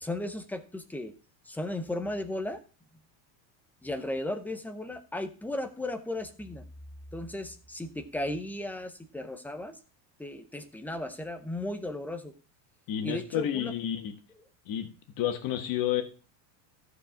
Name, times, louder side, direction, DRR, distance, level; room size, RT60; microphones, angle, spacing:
voice 1, 0.0-1.1 1.5-2.6 3.8-6.6 7.1-9.7 10.2-12.3 13.0-13.7, left 1 dB, 5° left, 9 dB, 0.5 m, -35 dB
voice 2, 12.9-14.1 14.6-14.9 15.2-16.0, left 11 dB, 40° left, 8 dB, 1.6 m, -30 dB
14.0 x 5.0 x 5.9 m, 0.37 s
cardioid pair, 155°, 50 cm